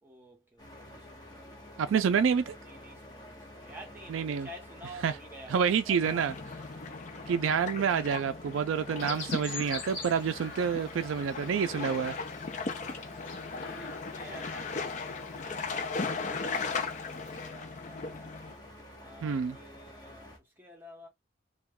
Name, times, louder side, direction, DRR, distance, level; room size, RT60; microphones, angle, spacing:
voice 1, 0.0-1.7 2.6-6.2 10.7-11.1 11.3-11.9 13.5-18.3 19.0-21.1, equal, 10° right, 0.8 m, -51 dB
sound 1, 0.6-20.4, left 1 dB, 20° left, 0.9 m, -50 dB
voice 2, 1.8-2.5 4.1-4.5 5.0-5.1 5.5-6.3 7.3-12.1 19.2-19.6, right 7 dB, 80° right, 0.3 m, -28 dB
sound 2, 6.0-18.5, left 4 dB, 40° left, 0.4 m, -37 dB
Chirp tweet, 9.0-17.5, left 5 dB, 80° left, 1.0 m, -46 dB
2.3 x 2.2 x 3.5 m
head